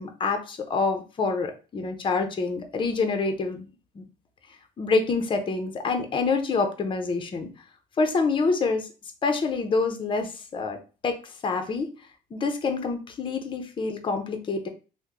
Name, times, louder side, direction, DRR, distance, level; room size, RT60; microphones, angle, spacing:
voice 1, 0.0-3.7 4.0-4.1 4.8-7.5 8.0-8.9 9.2-11.9 12.3-14.7, left 4 dB, 30° left, 6 dB, 0.6 m, -27 dB
3.0 x 2.1 x 3.5 m, 0.34 s
cardioid pair, 110°, 17 cm